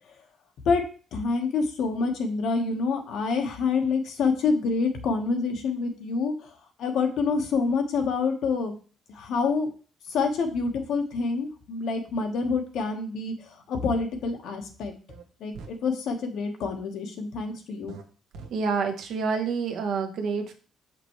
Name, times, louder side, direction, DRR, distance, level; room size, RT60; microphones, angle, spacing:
voice 1, 1.1-6.3 6.8-8.7 9.1-9.7 10.1-13.3 13.7-14.9 15.4-17.9, left 4 dB, 70° left, 4 dB, 1.3 m, -27 dB
sound 1, 15.1-15.2 15.5-15.8 17.9-18.0 18.3-18.5, right 5 dB, 85° right, 1.1 m, -42 dB
voice 2, 18.5-20.5, right 5 dB, 60° right, 5 dB, 1.1 m, -28 dB
6.8 x 5.9 x 3.1 m, 0.38 s
cardioid pair, 150°, 0 cm